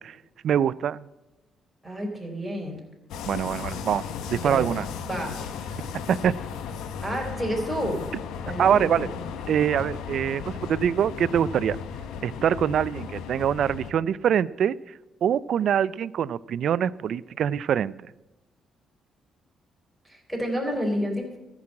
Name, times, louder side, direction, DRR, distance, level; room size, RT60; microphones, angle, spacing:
voice 1, 0.4-1.0 3.3-4.9 6.1-6.4 8.6-9.1 9.5-11.8 12.2-14.7 15.2-18.1, right 9 dB, 65° right, 20 dB, 0.3 m, -24 dB
voice 2, 1.8-2.8 4.4-4.7 5.0-5.4 7.0-8.0 8.4-9.3 20.0-21.4, equal, 5° right, -1 dB, 3.6 m, -30 dB
sound 1, 3.1-13.9, left 7 dB, 90° left, 0.8 m, -35 dB
13.5 x 6.1 x 7.5 m, 1.0 s
cardioid pair, 90°, 0 cm